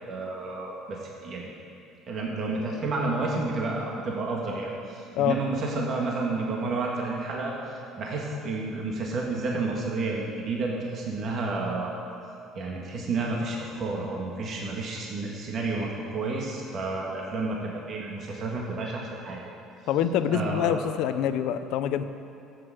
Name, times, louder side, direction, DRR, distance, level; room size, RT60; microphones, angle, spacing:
voice 1, 0.1-1.4 2.1-7.5 8.0-11.9 12.5-19.4 20.3-20.9, right 3 dB, 40° right, -2 dB, 1.8 m, -30 dB
voice 2, 19.9-22.0, left 9 dB, 65° left, 11 dB, 0.7 m, -25 dB
12.5 x 8.1 x 7.8 m, 2.6 s
cardioid pair, 140°, 0 cm